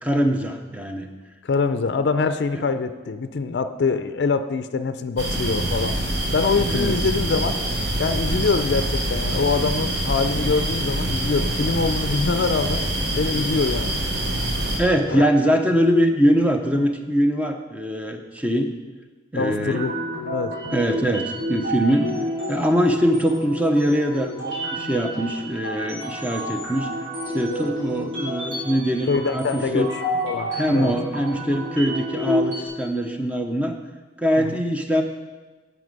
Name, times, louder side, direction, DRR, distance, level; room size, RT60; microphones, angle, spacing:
voice 1, 0.0-1.1 2.5-2.6 6.7-7.0 14.8-18.7 19.3-19.9 20.7-22.2 22.5-26.9 27.3-29.9 30.5-33.8 34.2-35.0, equal, 10° right, 4 dB, 0.6 m, -22 dB
voice 2, 1.4-6.0 6.3-7.6 8.0-12.8 13.2-14.0 15.1-15.3 19.3-20.5 29.1-29.9 30.2-31.0 34.5-34.6, left 4 dB, 60° left, 10 dB, 0.4 m, -24 dB
sound 1, 5.2-14.8, right 1 dB, 65° right, 1.4 m, -25 dB
sound 2, 19.4-32.7, equal, 90° right, 2.6 m, -30 dB
9.5 x 6.0 x 5.2 m, 1.3 s
head